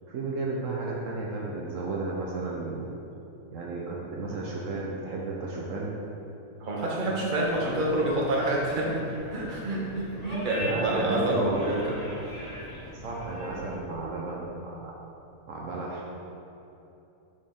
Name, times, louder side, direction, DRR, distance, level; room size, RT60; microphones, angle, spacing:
voice 1, 0.0-2.9 3.5-6.0 10.6-11.7 12.9-14.9 15.5-16.1, right 3 dB, 70° right, -3 dB, 1.1 m, -33 dB
voice 2, 6.6-12.0, right 1 dB, 40° right, -4 dB, 1.2 m, -28 dB
sound 1, 7.4-13.8, equal, 30° left, 1.2 m, -41 dB
9.4 x 4.3 x 3.7 m, 2.9 s
omnidirectional pair, 1.5 m